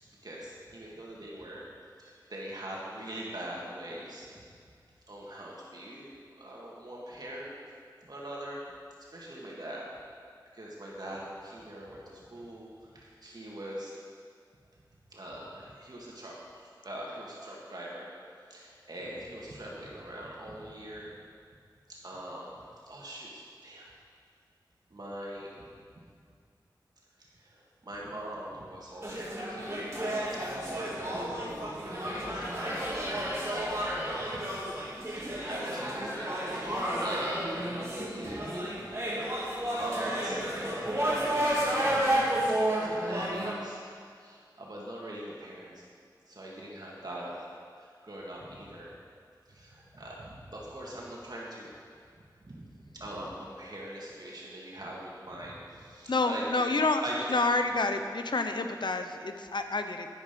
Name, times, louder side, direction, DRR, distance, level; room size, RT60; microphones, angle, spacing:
voice 1, 0.2-1.6 2.0-4.5 5.1-7.6 8.0-8.6 9.1-9.9 10.5-13.9 15.1-16.4 16.8-18.1 18.5-21.1 21.9-23.9 24.9-25.7 27.2-29.8 30.6-34.5 35.1-37.7 38.1-38.6 39.3-45.8 46.3-47.4 47.8-48.9 49.5-51.7 52.2-56.7 57.0-57.3, right 1 dB, 60° right, -5 dB, 2.1 m, -42 dB
sound 1, 29.0-43.5, right 1 dB, 35° right, 3.0 m, -31 dB
voice 2, 56.1-57.0 57.3-60.1, left 3 dB, 75° left, 7 dB, 0.8 m, -28 dB
11.0 x 10.5 x 5.3 m, 2.2 s
wide cardioid pair, 70°, 8 cm